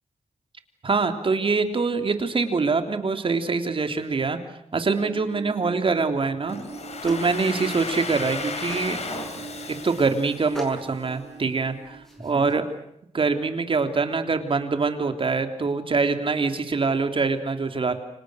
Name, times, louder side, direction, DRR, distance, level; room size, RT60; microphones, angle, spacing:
voice 1, 0.8-4.4 4.7-6.6 7.0-12.6 13.1-17.9, right 4 dB, 50° right, 7 dB, 3.3 m, -24 dB
sound 1, 5.0-12.3, right 6 dB, 75° right, 5.8 m, -43 dB
sound 2, 6.4-12.5, equal, 5° left, 7.1 m, -41 dB
Domestic sounds home sounds, 6.5-11.2, left 4 dB, 70° left, 5.2 m, -35 dB
30.0 x 26.5 x 6.4 m, 0.76 s
wide cardioid pair, 95°, 12 cm